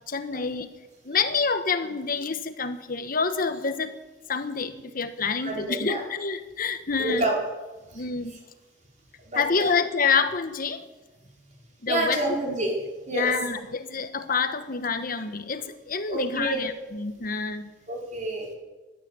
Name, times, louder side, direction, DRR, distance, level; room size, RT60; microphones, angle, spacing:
voice 1, 0.1-0.7 1.0-3.9 4.3-7.2 7.9-8.4 9.3-10.8 11.8-12.2 13.1-17.7, left 5 dB, 50° left, 10 dB, 1.1 m, -27 dB
voice 2, 5.4-6.0 7.0-7.3 7.9-8.0 9.3-9.7 11.9-12.7 13.1-13.3 16.1-16.6 17.9-18.5, right 2 dB, 40° right, -1 dB, 4.5 m, -28 dB
16.5 x 12.5 x 7.0 m, 1.2 s
head